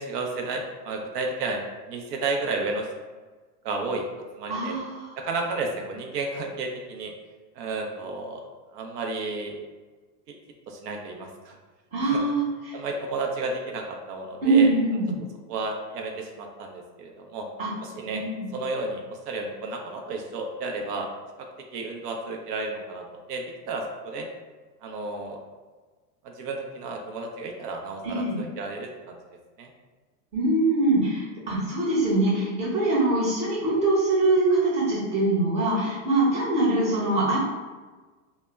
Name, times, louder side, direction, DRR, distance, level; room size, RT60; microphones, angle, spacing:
voice 1, 0.0-2.9 3.6-4.1 4.3-4.8 5.2-7.1 7.5-8.4 8.7-9.6 10.7-11.6 12.0-12.3 12.7-14.7 15.5-17.4 17.8-18.2 18.5-21.1 21.4-21.5 21.7-24.3 24.8-25.4 26.2-29.2 29.6-29.7, right 3 dB, 75° right, 2 dB, 0.6 m, -32 dB
voice 2, 4.5-5.2 11.9-12.8 14.4-15.2 17.6-17.7 18.1-18.5 28.0-28.4 30.3-37.4, right 2 dB, 15° right, -8 dB, 0.7 m, -23 dB
2.1 x 2.0 x 3.3 m, 1.3 s
supercardioid pair, 140°, 47 cm